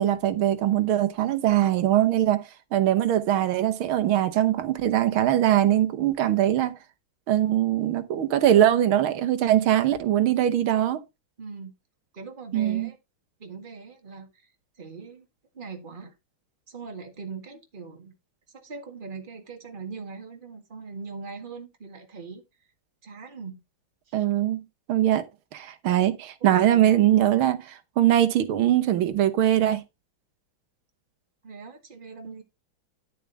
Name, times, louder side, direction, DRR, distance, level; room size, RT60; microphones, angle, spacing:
voice 1, 0.0-6.8 7.3-11.0 12.5-12.9 24.1-24.6 24.9-25.3 25.5-29.8, right 12 dB, 90° right, 1.9 m, -22 dB
voice 2, 11.4-11.7 12.1-13.0 13.4-14.5 14.8-15.3 15.5-16.1 16.7-18.2 18.5-22.4 23.0-23.6 24.1-24.3 26.4-27.2 31.4-32.4, right 4 dB, 25° right, 1.8 m, -41 dB
11.0 x 7.0 x 3.3 m
omnidirectional pair, 2.2 m